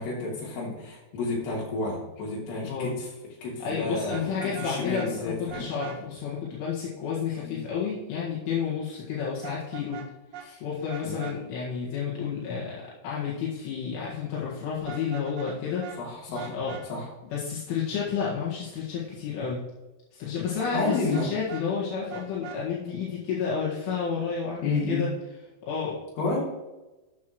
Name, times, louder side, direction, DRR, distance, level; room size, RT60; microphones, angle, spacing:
voice 1, 0.0-3.1 3.4-5.7 7.4-7.6 10.4-10.6 11.0-11.3 16.0-16.6 16.9-17.1 20.7-21.3 24.6-25.1 26.2-26.4, left 3 dB, 55° left, -4 dB, 4.8 m, -31 dB
voice 2, 3.4-10.0 10.6-15.9 16.3-16.8 17.3-19.6 20.1-25.1 25.6-26.0, left 6 dB, 75° left, -7 dB, 4.2 m, -31 dB
Vehicle horn car horn honking, 4.0-5.1 5.5-6.0 9.4-10.1 10.3-10.5 10.9-11.4 14.8-15.6 15.8-16.0 16.3-16.8 20.6-21.7 22.1-22.6, right 9 dB, 70° right, 2.2 m, -41 dB
12.5 x 8.4 x 3.1 m, 1.1 s
omnidirectional pair, 5.7 m